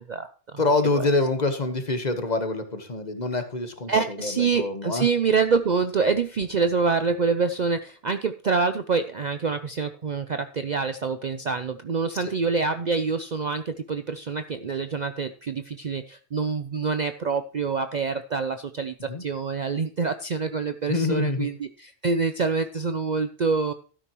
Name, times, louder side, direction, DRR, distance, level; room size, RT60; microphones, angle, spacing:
voice 1, 0.0-0.6 1.0-1.1 3.9-23.7, right 5 dB, 50° right, 9 dB, 0.6 m, -26 dB
voice 2, 0.6-5.1 12.1-12.3 19.1-19.2 20.9-21.5, left 3 dB, 35° left, 8 dB, 1.3 m, -26 dB
12.5 x 10.0 x 3.0 m, 0.39 s
omnidirectional pair, 1.2 m